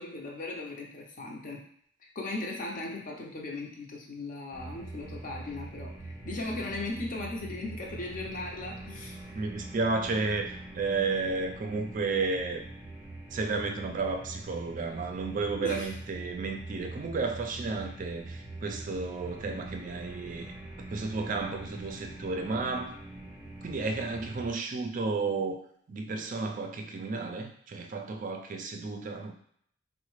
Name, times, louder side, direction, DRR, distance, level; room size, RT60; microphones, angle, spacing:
voice 1, 0.0-1.6 2.0-9.1 15.6-15.9, left 2 dB, 45° left, 0 dB, 0.6 m, -38 dB
sound 1, 4.5-24.5, right 2 dB, 10° right, 0.7 m, -43 dB
voice 2, 9.4-12.6 13.3-20.5 20.9-22.9 23.6-25.6 25.9-29.3, right 3 dB, 40° right, 4 dB, 0.3 m, -32 dB
3.8 x 2.1 x 3.1 m, 0.65 s
head